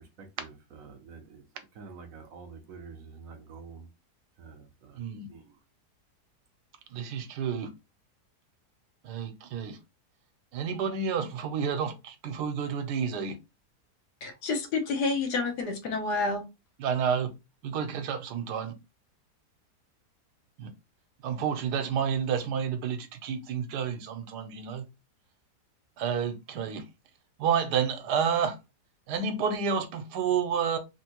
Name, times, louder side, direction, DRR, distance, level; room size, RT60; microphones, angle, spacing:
voice 1, 1.8-3.8 4.4-4.5, right 5 dB, 65° right, 1.0 m, -45 dB
voice 2, 5.0-5.3 6.9-7.7 9.0-9.8 10.5-13.4 16.8-17.3 17.6-18.7 20.6-20.7 21.2-24.9 26.0-26.8 27.4-28.6 29.1-30.8, right 7 dB, 85° right, 1.2 m, -30 dB
voice 3, 14.2-16.5, left 3 dB, 75° left, 1.4 m, -29 dB
3.4 x 2.6 x 2.9 m
omnidirectional pair, 1.7 m